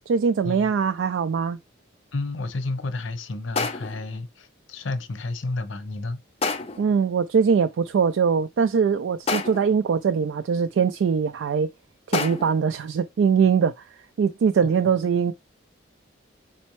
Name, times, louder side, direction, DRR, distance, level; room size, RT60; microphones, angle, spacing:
voice 1, 0.1-1.6 6.8-11.7 12.1-13.7 14.2-15.3, right 6 dB, 75° right, 0.3 m, -22 dB
voice 2, 2.1-6.2 14.8-14.9, left 2 dB, 80° left, 0.7 m, -31 dB
sound 1, 3.6-4.1 6.4-6.9 9.3-9.8 12.1-12.6, left 4 dB, 30° left, 0.4 m, -28 dB
4.2 x 4.1 x 3.0 m
head